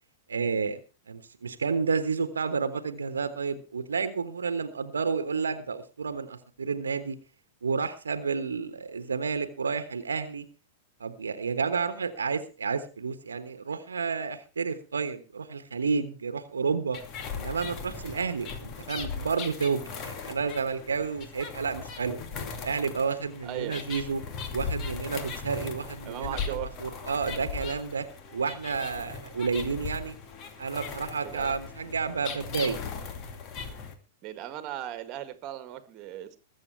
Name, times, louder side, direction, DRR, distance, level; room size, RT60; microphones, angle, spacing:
voice 1, 0.3-0.8 1.1-7.2 7.6-10.4 11.0-17.0 17.4-22.2 22.6-24.2 24.5-28.1 28.3-30.1 30.6-32.8, right 5 dB, 80° right, 1.3 m, -30 dB
sound 1, 16.9-33.9, left 5 dB, 35° left, 2.5 m, -38 dB
voice 2, 23.4-23.8 26.1-26.7 31.2-31.6 34.2-36.4, right 12 dB, 40° right, 1.8 m, -37 dB
21.0 x 7.6 x 4.6 m
figure-of-eight pair, 100°, 0 cm